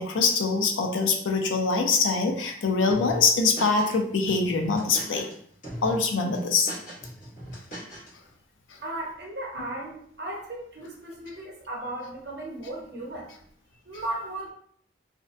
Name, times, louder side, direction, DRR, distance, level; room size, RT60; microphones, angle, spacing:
voice 1, 0.0-5.3 5.8-6.7, left 4 dB, 80° left, 3 dB, 0.4 m, -24 dB
sound 1, 2.9-4.0 4.3-5.3 5.6-6.0 6.3-8.1, equal, 45° left, 1.1 m, -38 dB
voice 2, 8.8-13.3 13.9-14.5, right 1 dB, 55° right, -2 dB, 0.7 m, -36 dB
2.5 x 2.1 x 2.5 m, 0.63 s
head